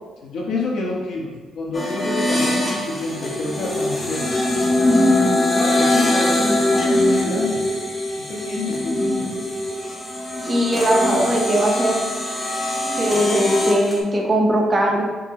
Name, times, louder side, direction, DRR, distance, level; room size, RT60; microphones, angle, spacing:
voice 1, 0.2-4.3 5.3-7.7 8.2-9.3, left 2 dB, 75° left, -3 dB, 1.0 m, -28 dB
sound 1, 1.7-14.0, left 1 dB, 25° left, 0.9 m, -21 dB
voice 2, 10.5-12.0 13.0-15.0, right 1 dB, 30° right, 0 dB, 0.9 m, -19 dB
6.5 x 2.2 x 2.9 m, 1.4 s
cardioid pair, 90°, 0 cm